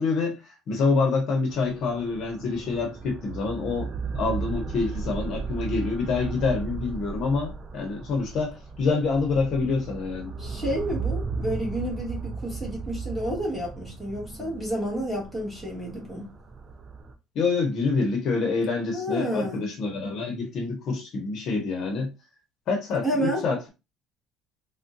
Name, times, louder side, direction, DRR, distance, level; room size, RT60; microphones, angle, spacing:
voice 1, 0.0-10.3 17.3-22.1 22.7-23.7, left 4 dB, 50° left, 0.8 m, -27 dB
sound 1, 1.5-17.1, right 4 dB, 30° right, 0.5 m, -35 dB
voice 2, 10.4-16.3 18.9-19.7 23.0-23.4, right 1 dB, ahead, 1.5 m, -30 dB
3.5 x 2.1 x 2.6 m
cardioid pair, 140°, 0 cm